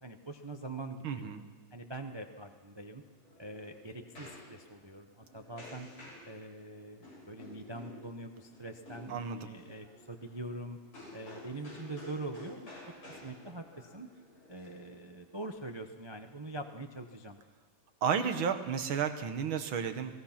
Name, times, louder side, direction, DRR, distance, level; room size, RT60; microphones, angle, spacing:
voice 1, 0.0-1.3 1.7-3.0 3.4-5.9 6.3-10.8 11.1-12.7 13.2-14.1 14.5-17.4, right 2 dB, 35° right, 5 dB, 0.4 m, -43 dB
voice 2, 1.0-1.4 9.1-9.4 18.0-20.1, right 7 dB, 80° right, 8 dB, 2.1 m, -32 dB
sound 1, 3.0-15.5, left 1 dB, 90° left, 7.2 m, -52 dB
26.5 x 17.5 x 5.9 m, 1.4 s
omnidirectional pair, 2.2 m